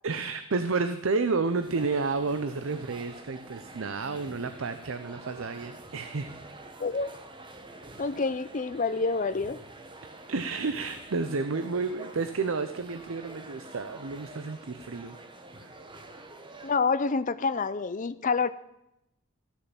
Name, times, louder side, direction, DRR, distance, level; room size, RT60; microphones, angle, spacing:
voice 1, 0.0-6.4 10.3-15.2 15.6-15.7, right 4 dB, 65° right, 9 dB, 0.6 m, -31 dB
sound 1, 1.4-16.7, right 2 dB, 20° right, 1.0 m, -47 dB
voice 2, 6.8-7.2 8.0-9.6 16.6-18.5, left 4 dB, 35° left, 13 dB, 0.5 m, -27 dB
14.0 x 6.8 x 7.1 m, 0.83 s
head